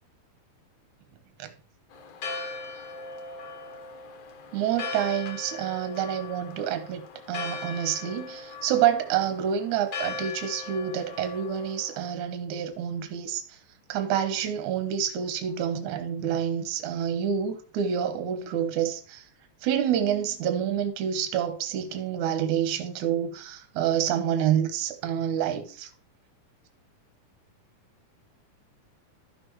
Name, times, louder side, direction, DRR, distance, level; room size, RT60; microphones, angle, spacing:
Church bell, 1.9-12.1, left 4 dB, 60° left, 2.1 m, -39 dB
voice 1, 4.5-7.0 7.3-13.6 13.9-19.2 19.6-25.9, right 9 dB, 65° right, 2.3 m, -28 dB
13.5 x 6.0 x 3.1 m
omnidirectional pair, 4.0 m